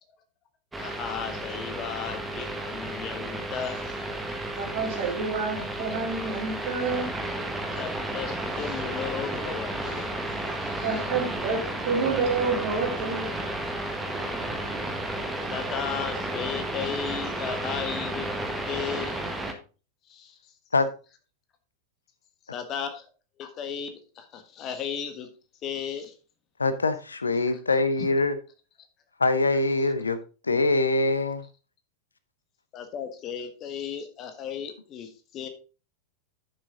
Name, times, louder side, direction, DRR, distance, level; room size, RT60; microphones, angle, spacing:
sound 1, 0.7-19.5, right 1 dB, 10° right, 1.4 m, -32 dB
voice 1, 0.8-4.0 4.9-5.1 7.7-10.1 10.6-11.0 14.2-14.3 15.5-18.3 18.7-19.2 20.1-20.4 22.5-23.0 23.4-25.3 25.6-26.1 27.4-27.6 28.0-28.1 32.7-35.5, left 8 dB, 35° left, 8 dB, 1.4 m, -35 dB
voice 2, 4.6-7.1 10.8-11.6 11.8-13.3 13.9-14.0, right 4 dB, 45° right, 0 dB, 3.4 m, -28 dB
voice 3, 26.6-28.4 29.2-30.2 30.5-31.4, left 2 dB, 75° left, 13 dB, 0.8 m, -23 dB
10.5 x 6.5 x 3.8 m, 0.34 s
figure-of-eight pair, 90°, 0 cm